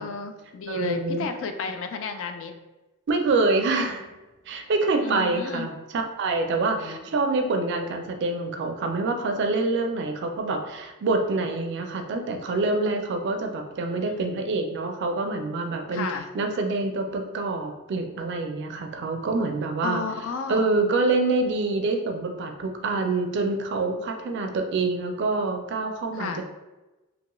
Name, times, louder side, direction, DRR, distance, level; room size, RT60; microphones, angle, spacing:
voice 1, 0.0-2.6 5.0-5.7 6.8-7.0 14.1-14.4 15.9-16.3 19.8-20.7 26.1-26.4, left 5 dB, 60° left, 7 dB, 0.3 m, -33 dB
voice 2, 0.7-1.3 3.1-4.1 4.5-16.1 16.3-20.0 20.5-26.4, right 3 dB, 55° right, 4 dB, 0.4 m, -26 dB
2.9 x 2.2 x 3.0 m, 1.1 s
head